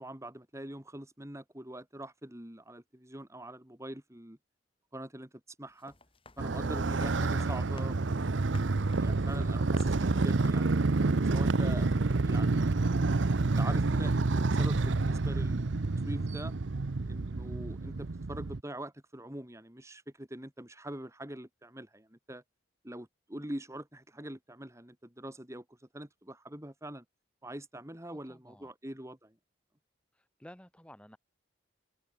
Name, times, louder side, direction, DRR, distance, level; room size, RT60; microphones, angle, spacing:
voice 1, 0.0-4.4 4.9-5.3 5.6-5.9 6.4-10.7 11.2-11.9 12.2-12.8 13.4-15.8 16.1-16.5 17.1-22.4 22.8-25.6 25.9-27.0 27.4-29.3, right 1 dB, 15° right, 2.8 m, -43 dB
sound 1, 5.7-10.1 10.4-10.8, left 3 dB, 30° left, 6.6 m, -55 dB
Motorcycle, 6.4-18.6, right 3 dB, 80° right, 0.8 m, -28 dB
voice 2, 28.1-28.7 30.1-31.2, equal, 5° left, 3.3 m, -55 dB
head